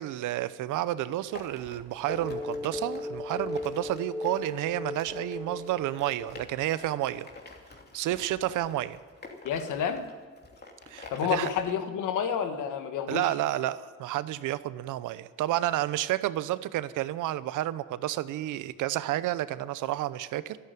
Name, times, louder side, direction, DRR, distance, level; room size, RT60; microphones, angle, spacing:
voice 1, 0.0-7.3 7.9-9.0 10.9-11.5 13.1-20.6, right 14 dB, 85° right, 16 dB, 0.7 m, -30 dB
sound 1, 1.3-11.7, left 3 dB, 35° left, 2.8 m, -48 dB
sound 2, 2.1-6.7, left 2 dB, 5° left, 0.4 m, -37 dB
voice 2, 9.4-10.0 11.1-13.3, left 8 dB, 85° left, 8 dB, 1.5 m, -29 dB
13.0 x 11.5 x 9.2 m, 1.5 s
cardioid pair, 90°, 30 cm